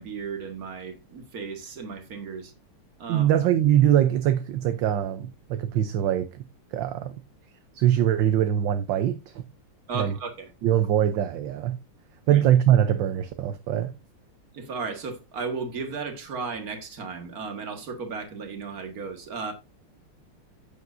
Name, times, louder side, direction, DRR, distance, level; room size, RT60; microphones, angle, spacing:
voice 1, 0.0-2.5 3.0-3.3 9.9-10.5 12.3-12.4 14.5-19.5, right 5 dB, 45° right, 2.0 m, -35 dB
voice 2, 3.1-6.4 6.7-7.2 7.7-9.4 9.9-10.1 10.6-11.8 12.3-13.9, right 11 dB, 70° right, 1.3 m, -22 dB
10.5 x 8.3 x 2.6 m
omnidirectional pair, 2.4 m